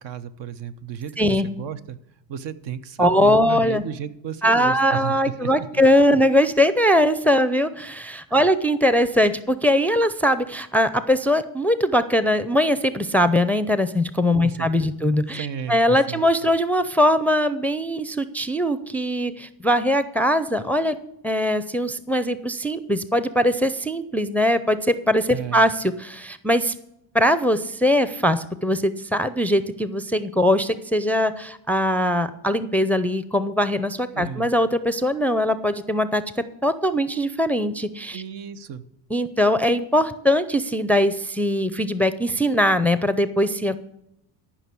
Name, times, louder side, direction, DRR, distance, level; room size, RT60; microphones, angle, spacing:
voice 1, 0.0-2.0 2.3-5.8 8.3-8.5 14.3-14.9 15.3-16.2 25.3-25.6 34.1-34.5 38.1-38.8, right 8 dB, 65° right, 11 dB, 1.1 m, -34 dB
voice 2, 1.2-1.5 3.0-3.8 4.4-21.0 21.2-26.7 27.1-38.2 39.1-43.8, equal, 5° left, 13 dB, 0.5 m, -21 dB
14.0 x 5.9 x 8.4 m, 0.81 s
cardioid pair, 105°, 45 cm